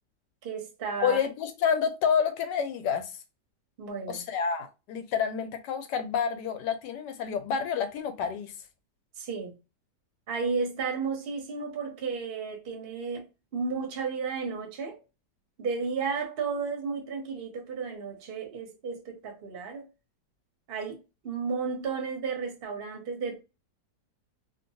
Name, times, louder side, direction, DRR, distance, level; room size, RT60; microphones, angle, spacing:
voice 1, 0.4-1.2 3.8-4.2 9.2-9.6 10.3-15.0 15.6-19.9 20.7-23.4, right 5 dB, 50° right, 0.7 m, -33 dB
voice 2, 1.0-3.1 4.1-8.5, left 7 dB, 90° left, 1.2 m, -29 dB
2.9 x 2.2 x 2.6 m
omnidirectional pair, 1.8 m